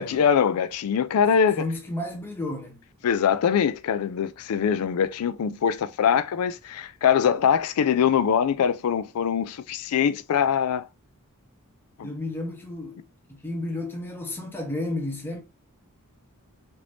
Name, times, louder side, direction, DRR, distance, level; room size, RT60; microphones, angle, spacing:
voice 1, 0.0-1.6 3.0-10.9 12.0-12.1, left 7 dB, 75° left, 0.4 m, -23 dB
voice 2, 1.6-2.8 12.0-15.4, left 2 dB, 10° left, 0.6 m, -32 dB
3.3 x 2.6 x 3.1 m
head